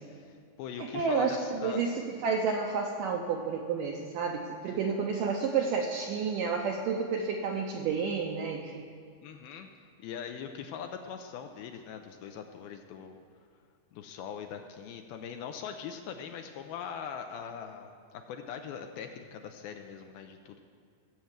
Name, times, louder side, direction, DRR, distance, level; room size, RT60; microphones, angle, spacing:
voice 1, 0.1-1.8 9.2-9.7 10.0-13.2 13.9-20.6, left 7 dB, 80° left, 5 dB, 2.3 m, -41 dB
voice 2, 0.9-1.9 2.2-8.8, right 5 dB, 75° right, 1 dB, 2.0 m, -30 dB
17.0 x 7.8 x 7.3 m, 2.1 s
omnidirectional pair, 4.8 m